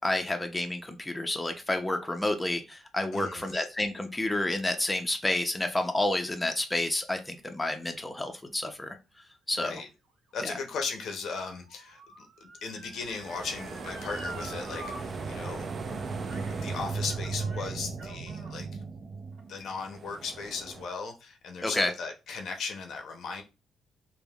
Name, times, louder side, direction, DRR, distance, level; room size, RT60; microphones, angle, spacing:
voice 1, 0.0-9.0 9.5-9.8 10.4-10.5 21.6-21.9, left 1 dB, 10° left, 0.5 m, -30 dB
voice 2, 3.1-3.5 9.6-9.9 10.3-15.7 16.2-18.8 19.5-23.4, left 4 dB, 70° left, 0.6 m, -37 dB
Motor vehicle (road) / Siren, 9.9-15.0 15.3-15.4 16.3-16.6 16.9-18.6 19.3-19.4, right 2 dB, 85° right, 1.0 m, -47 dB
sound 1, 13.0-20.9, right 4 dB, 45° right, 0.4 m, -37 dB
3.3 x 2.1 x 2.2 m
cardioid pair, 90°, 0 cm